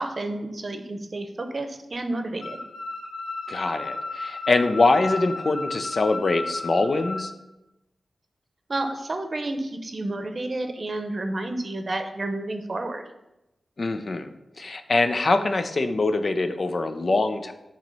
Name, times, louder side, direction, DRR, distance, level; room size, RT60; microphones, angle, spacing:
voice 1, 0.0-2.6 8.7-13.0, right 2 dB, 50° right, 7 dB, 0.7 m, -30 dB
sound 1, 2.4-7.2, left 3 dB, 80° left, 1.1 m, -34 dB
voice 2, 3.5-7.3 13.8-17.5, left 3 dB, 55° left, 8 dB, 0.5 m, -23 dB
7.4 x 3.0 x 5.3 m, 0.93 s
cardioid pair, 65°, 0 cm